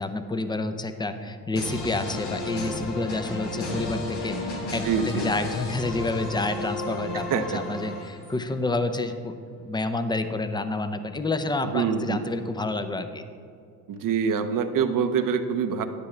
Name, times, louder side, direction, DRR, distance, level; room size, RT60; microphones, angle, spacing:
voice 1, 0.0-9.4 9.6-13.2, left 2 dB, 10° left, 9 dB, 0.6 m, -29 dB
sound 1, 1.6-8.5, left 2 dB, 80° left, 1.6 m, -33 dB
voice 2, 4.8-5.3 7.1-7.6 11.7-12.2 13.9-15.8, right 6 dB, 50° right, 8 dB, 0.7 m, -25 dB
10.0 x 8.2 x 3.3 m, 2.4 s
supercardioid pair, 75°, 41 cm